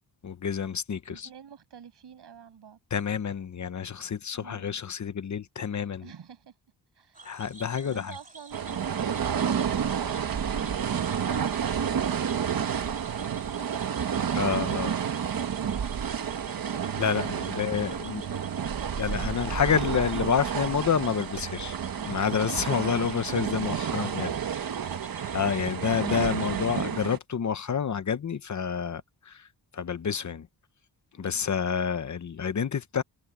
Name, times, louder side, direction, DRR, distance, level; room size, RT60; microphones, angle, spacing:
voice 1, 0.2-1.3 2.9-6.0 7.2-8.1 14.3-14.9 17.0-18.2 19.0-21.7 22.0-24.3 25.3-29.5 29.7-30.5 31.1-33.0, left 7 dB, 45° left, 0.8 m, -28 dB
voice 2, 1.1-2.8 4.3-4.7 6.0-6.5 6.9-7.3 7.8-10.7 15.4-16.4 18.0-19.6 23.8-25.0 31.1-31.5, right 8 dB, 80° right, 7.8 m, -49 dB
Cricket / Frog, 7.1-26.9, right 3 dB, 20° right, 3.3 m, -49 dB
sound 1, 8.5-27.2, right 8 dB, 55° right, 1.3 m, -30 dB
wide cardioid pair, 175°, 41 cm